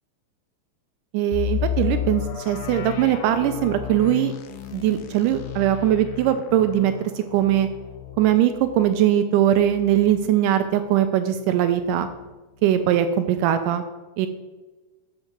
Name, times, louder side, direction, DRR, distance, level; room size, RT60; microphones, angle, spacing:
voice 1, 1.1-4.3 4.7-7.7 8.2-12.1 12.6-13.8 14.2-14.3, right 11 dB, 80° right, 9 dB, 2.0 m, -21 dB
sound 1, 1.3-11.0 11.4-11.5 12.0-12.2, left 11 dB, 80° left, 2.3 m, -33 dB
8.6 x 6.6 x 4.4 m, 1.2 s
omnidirectional pair, 3.9 m